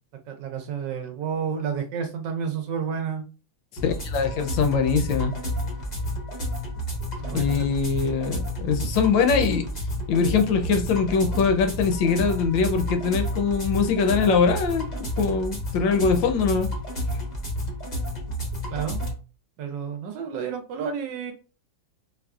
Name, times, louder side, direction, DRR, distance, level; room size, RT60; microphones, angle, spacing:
voice 1, 0.3-3.2 7.2-7.6 18.7-19.0 19.6-21.3, right 7 dB, 75° right, 1.1 m, -30 dB
voice 2, 3.8-5.3 7.3-9.6 10.1-14.8 15.2-16.7, left 5 dB, 75° left, 1.2 m, -22 dB
sound 1, 3.8-19.1, equal, 50° left, 0.5 m, -30 dB
4.0 x 2.3 x 2.3 m
omnidirectional pair, 2.2 m